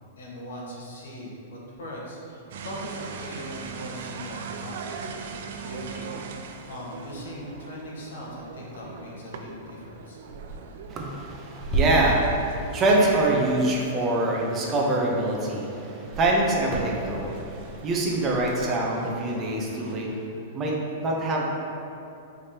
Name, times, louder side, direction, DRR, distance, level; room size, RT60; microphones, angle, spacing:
voice 1, 0.2-5.4 5.6-6.1 6.7-10.2, left 1 dB, 85° left, -4 dB, 1.0 m, -40 dB
sound 1, 2.5-20.0, right 5 dB, 70° right, 0.3 m, -41 dB
sound 2, 10.3-10.6 11.6-11.8 12.9-13.2 16.0-18.8, right 3 dB, 5° left, 0.9 m, -34 dB
voice 2, 10.9-20.2 20.5-20.8 21.0-21.4, right 2 dB, 25° right, -2 dB, 0.7 m, -25 dB
4.9 x 3.4 x 2.9 m, 2.7 s
hypercardioid pair, 135°, 0 cm